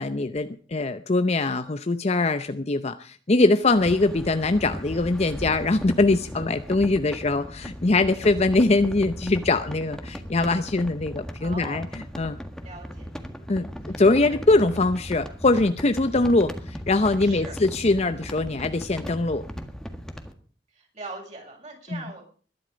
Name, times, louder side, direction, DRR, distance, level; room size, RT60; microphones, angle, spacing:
voice 1, 0.0-12.4 13.5-19.4 21.9-22.0, left 2 dB, 40° left, 10 dB, 0.7 m, -22 dB
sound 1, 3.6-20.3, equal, 5° left, 1.7 m, -37 dB
voice 2, 11.4-11.9 12.6-13.1 13.5-13.7 14.2-14.4 17.2-17.6 20.7-22.2, right 2 dB, 40° right, 0 dB, 6.7 m, -41 dB
21.0 x 11.0 x 5.2 m, 0.42 s
head